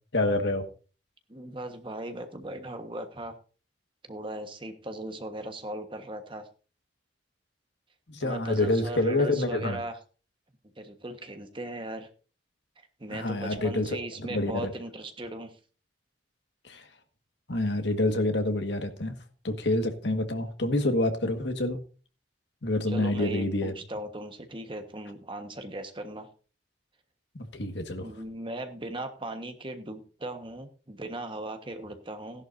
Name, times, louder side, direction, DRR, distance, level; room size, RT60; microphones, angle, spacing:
voice 1, 0.1-0.7 8.1-9.8 13.1-14.0 14.3-14.7 16.6-16.8 17.5-19.1 19.4-21.8 22.6-23.7 27.4-28.1, left 2 dB, 70° left, 1.7 m, -27 dB
voice 2, 1.3-3.3 4.1-6.5 8.2-10.0 10.8-12.1 12.8-15.6 22.9-26.3 28.0-32.4, right 1 dB, 30° right, 1.4 m, -38 dB
16.0 x 11.0 x 2.7 m
head